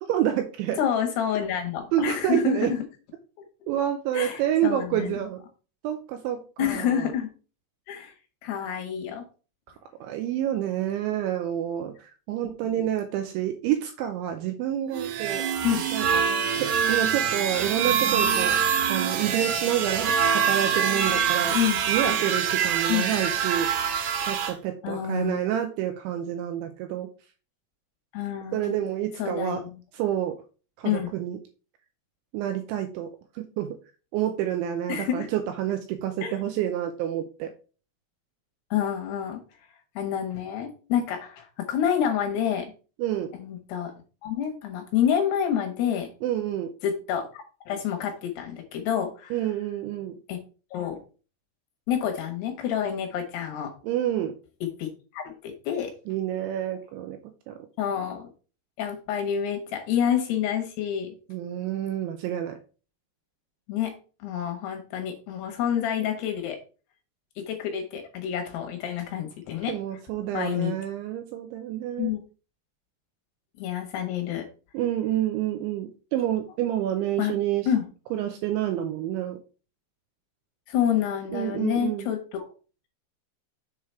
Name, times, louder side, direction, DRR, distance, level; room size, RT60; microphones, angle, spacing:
voice 1, 0.0-0.8 1.9-2.7 3.7-5.4 5.8-7.1 10.0-15.5 15.9-16.3 16.6-18.5 18.9-21.6 21.9-23.7 24.2-27.1 28.5-29.6 29.9-30.4 30.8-31.4 32.3-33.8 34.1-37.5 43.0-43.3 46.2-46.7 49.3-50.2 53.8-54.3 56.1-57.2 57.5-57.7 61.3-62.6 69.7-72.1 74.7-77.7 78.1-79.4 81.3-82.1, right 11 dB, 90° right, 6 dB, 2.7 m, -28 dB
voice 2, 0.8-2.8 4.1-5.1 6.6-7.3 7.9-8.1 8.4-9.2 12.4-12.8 15.6-15.8 21.5-21.8 22.9-23.1 24.8-25.4 28.1-28.7 29.2-29.6 30.8-31.1 34.9-35.3 36.2-36.3 38.7-39.4 40.0-42.7 43.3-43.9 44.2-46.1 46.8-49.3 50.3-50.4 50.7-51.0 51.9-53.7 54.6-54.9 55.1-55.9 57.8-58.3 58.8-61.1 63.7-64.0 64.2-66.6 67.4-69.8 70.3-70.8 72.0-72.2 73.6-74.5 77.2-77.3 77.7-77.8 80.7-82.5, left 9 dB, 70° left, 4 dB, 2.6 m, -28 dB
sound 1, 14.9-24.5, right 7 dB, 70° right, 2.9 m, -25 dB
7.2 x 4.8 x 4.4 m, 0.36 s
omnidirectional pair, 6.0 m